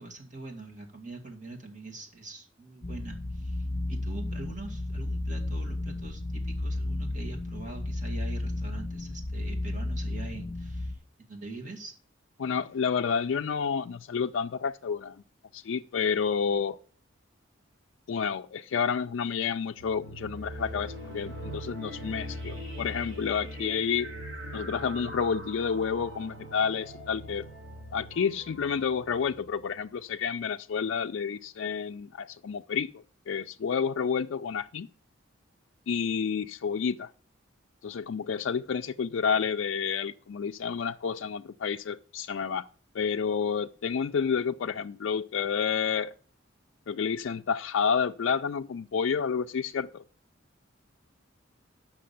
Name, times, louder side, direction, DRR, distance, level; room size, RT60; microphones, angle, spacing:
voice 1, 0.0-11.9, right 2 dB, 40° right, 2.1 m, -43 dB
sound 1, 2.8-10.9, left 1 dB, 30° left, 0.8 m, -33 dB
voice 2, 12.4-15.2 15.5-16.8 18.1-24.1 24.5-27.5 27.9-34.9 35.9-37.1 37.8-42.7 42.9-46.1 46.9-50.0, left 6 dB, 70° left, 0.4 m, -30 dB
sound 2, 19.8-30.0, equal, 65° right, 4.0 m, -41 dB
7.6 x 6.0 x 7.0 m
head